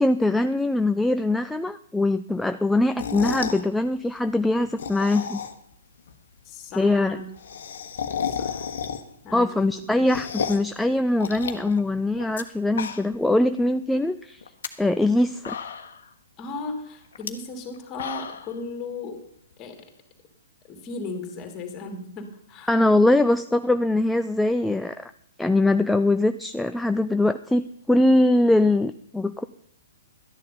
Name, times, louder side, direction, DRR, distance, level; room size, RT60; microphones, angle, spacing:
voice 1, 0.0-5.4 6.8-7.2 9.3-14.4 14.8-15.6 22.7-25.1 25.4-29.4, left 2 dB, 5° left, 9 dB, 0.4 m, -22 dB
sound 1, 2.8-3.6 4.6-5.7 6.1-6.2 6.4-6.5 6.7-6.8 7.0-9.3 9.6-10.7 11.2-12.4 12.7-13.3 13.6-13.7 14.4-14.7 15.2-15.3 15.4-16.1 17.1-17.3 17.7-18.5, left 7 dB, 55° left, 1.4 m, -32 dB
voice 2, 6.4-7.3 8.2-8.7 9.2-10.1 16.4-19.2 19.6-19.8 20.7-22.8, left 3 dB, 25° left, 5 dB, 2.8 m, -36 dB
13.0 x 10.5 x 5.4 m, 0.70 s
figure-of-eight pair, 120°, 0 cm